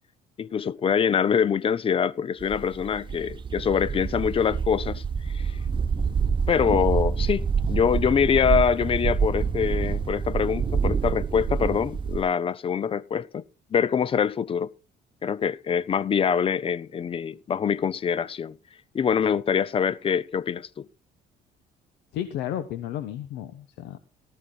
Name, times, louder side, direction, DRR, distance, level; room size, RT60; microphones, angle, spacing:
voice 1, 0.4-5.0 5.3-5.5 6.5-13.4 13.7-14.7 15.2-18.6 18.9-20.9, left 7 dB, 35° left, 0.6 m, -24 dB
sound 1, 2.4-12.2, right 6 dB, 30° right, 1.0 m, -27 dB
voice 2, 22.1-24.0, left 11 dB, 85° left, 1.2 m, -33 dB
18.5 x 13.5 x 2.5 m
cardioid pair, 110°, 17 cm